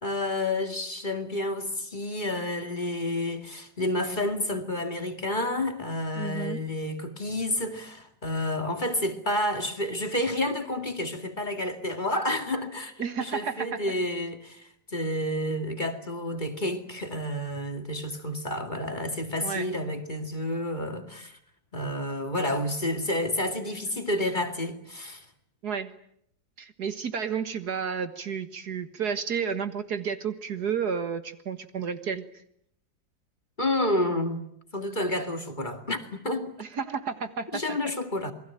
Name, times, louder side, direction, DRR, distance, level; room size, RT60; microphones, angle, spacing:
voice 1, 0.0-12.9 13.2-21.4 21.7-25.2 33.6-34.4 34.7-36.5 37.5-38.3, left 1 dB, 25° left, 2.4 m, -30 dB
voice 2, 6.2-6.6 13.0-13.8 19.4-19.7 25.6-26.0 26.6-32.3 36.6-37.8, right 6 dB, 65° right, 2.1 m, -31 dB
28.0 x 22.0 x 9.0 m
omnidirectional pair, 1.8 m